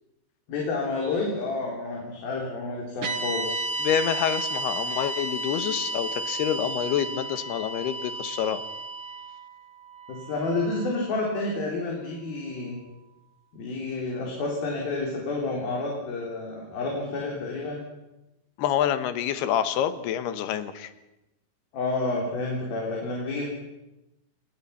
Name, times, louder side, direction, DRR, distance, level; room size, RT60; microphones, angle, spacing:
voice 1, 0.5-3.6 10.1-12.8 13.5-17.8 21.7-23.5, left 3 dB, 65° left, -2 dB, 5.5 m, -30 dB
sound 1, 3.0-11.3, right 2 dB, 55° right, 1.5 m, -33 dB
voice 2, 3.8-8.6 18.6-20.9, left 9 dB, 80° left, 11 dB, 3.3 m, -27 dB
28.5 x 19.5 x 5.8 m, 0.95 s
omnidirectional pair, 4.6 m